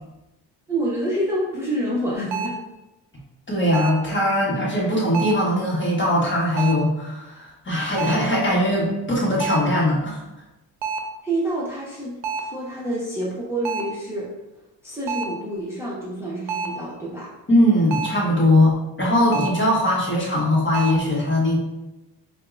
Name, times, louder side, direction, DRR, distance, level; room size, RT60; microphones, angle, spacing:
voice 1, 0.7-2.6 11.2-14.3 14.8-17.3, right 1 dB, 5° right, -6 dB, 0.9 m, -27 dB
sound 1, 2.3-2.7 3.7-4.1 5.1-5.5 6.6-7.0 8.0-8.3 9.4-9.8 10.8-11.2 12.2-12.6 13.6-14.0 15.1-15.4 16.5-16.9 17.9-18.3 19.3-19.7 20.7-21.0, right 5 dB, 80° right, 0.6 m, -28 dB
voice 2, 3.5-10.2 17.5-21.6, left 1 dB, 25° left, -4 dB, 1.3 m, -20 dB
4.4 x 2.3 x 2.5 m, 0.97 s
cardioid pair, 70°, 44 cm